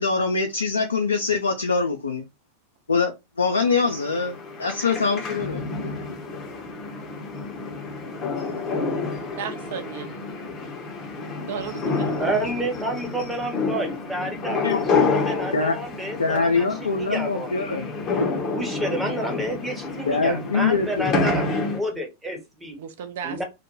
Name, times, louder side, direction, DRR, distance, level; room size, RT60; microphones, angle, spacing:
voice 1, 0.0-2.3 2.9-3.1 3.4-6.2 14.6-14.8 15.5-15.7 16.2-17.9 20.1-21.3, left 4 dB, 75° left, 0.3 m, -24 dB
sound 1, 3.6-21.8, left 4 dB, 30° left, 0.6 m, -29 dB
voice 2, 9.4-10.1 11.5-12.3 22.8-23.4, right 7 dB, 55° right, 0.5 m, -34 dB
voice 3, 12.2-17.5 18.5-21.5 21.7-22.8 23.2-23.4, right 1 dB, 5° right, 0.8 m, -30 dB
2.1 x 2.1 x 2.8 m
figure-of-eight pair, 90°, 0 cm